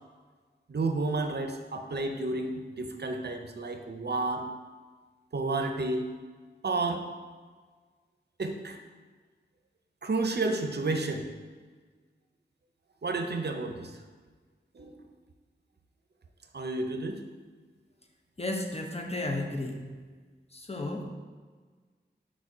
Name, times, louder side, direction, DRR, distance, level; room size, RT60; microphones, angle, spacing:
voice 1, 0.7-4.5 5.3-6.1 6.6-7.1 8.4-8.8 10.0-11.3 13.0-13.9 14.7-15.0 16.5-17.2, right 2 dB, 60° right, 5 dB, 0.6 m, -31 dB
voice 2, 18.4-20.0 20.5-21.1, left 2 dB, 35° left, 2 dB, 0.7 m, -33 dB
4.9 x 4.1 x 4.8 m, 1.5 s
wide cardioid pair, 55°, 19 cm